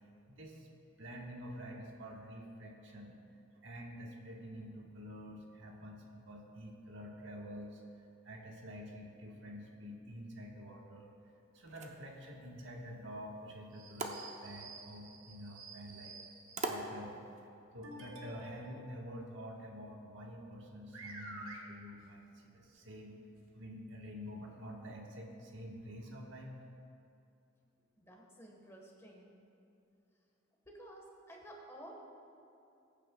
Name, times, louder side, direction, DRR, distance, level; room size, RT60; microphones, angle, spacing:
voice 1, 0.3-0.7 1.0-3.1 3.6-7.8 8.2-11.1 11.5-16.2 16.7-17.2 17.7-23.2 23.5-26.5, equal, 60° right, -1 dB, 1.4 m, -48 dB
sound 1, 11.5-17.5, right 2 dB, 35° right, 0.7 m, -46 dB
sound 2, 13.7-16.7 17.8-18.8 20.5-20.6 20.9-21.6 22.8-22.9 23.4-23.5 24.3-24.4, right 2 dB, 80° right, 1.6 m, -50 dB
voice 2, 28.0-29.4 30.7-31.9, right 1 dB, 15° left, -1 dB, 1.4 m, -53 dB
20.5 x 9.0 x 2.3 m, 2.7 s
head